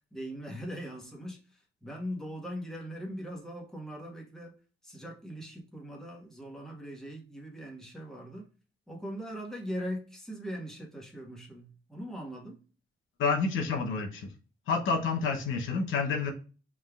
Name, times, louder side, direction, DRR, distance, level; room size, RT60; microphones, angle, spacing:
voice 1, 0.1-4.5 4.8-8.5 8.9-12.6, equal, ahead, -2 dB, 1.4 m, -40 dB
voice 2, 13.2-14.3 14.7-16.3, left 4 dB, 75° left, 4 dB, 0.9 m, -29 dB
5.3 x 3.6 x 2.4 m, 0.36 s
cardioid pair, 90°, 20 cm